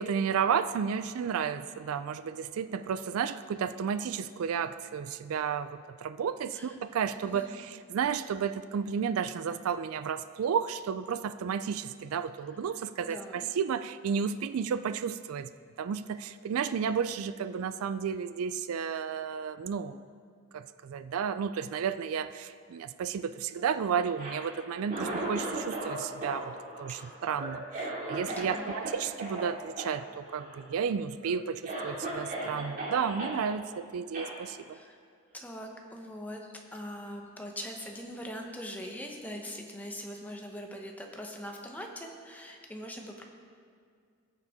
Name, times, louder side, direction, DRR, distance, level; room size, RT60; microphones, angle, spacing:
voice 1, 0.0-15.5 15.8-20.0 20.5-34.8, right 7 dB, 85° right, 13 dB, 0.4 m, -32 dB
voice 2, 7.2-7.6 13.0-13.5 26.9-27.1 28.3-28.7 34.7-35.0 35.3-43.2, equal, 10° left, 2 dB, 0.9 m, -42 dB
Cough, 24.1-25.9 26.2-28.9 29.2-29.4 29.8-29.9 30.2-30.7 31.2-31.3 31.6-33.4 34.1-34.3, right 2 dB, 40° right, 2.4 m, -36 dB
17.5 x 6.6 x 3.6 m, 2.1 s
head